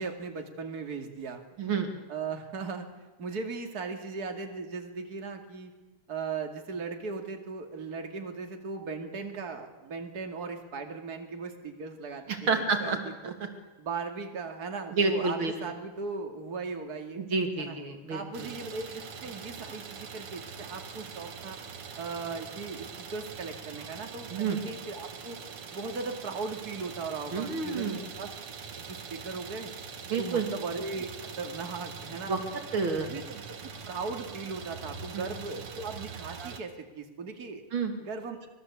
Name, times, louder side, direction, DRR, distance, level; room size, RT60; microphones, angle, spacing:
voice 1, 0.0-1.4 2.1-5.7 6.1-13.3 13.8-17.2 17.6-17.8 18.1-21.6 22.0-25.4 25.7-28.3 28.7-29.7 30.2-32.4 33.1-33.4 33.8-37.6 38.0-38.4, right 4 dB, 45° right, 4 dB, 2.8 m, -38 dB
voice 2, 1.6-1.9 12.3-13.0 13.2-13.3 14.9-15.5 17.2-18.5 24.3-24.6 27.3-28.0 30.1-30.5 32.3-32.4 32.7-33.1 35.1-35.3 37.7-37.9, right 4 dB, 65° right, 5 dB, 3.4 m, -29 dB
Idling, 18.3-36.6, right 6 dB, 85° right, 2.8 m, -43 dB
25.5 x 20.5 x 8.5 m, 1.1 s
omnidirectional pair, 2.4 m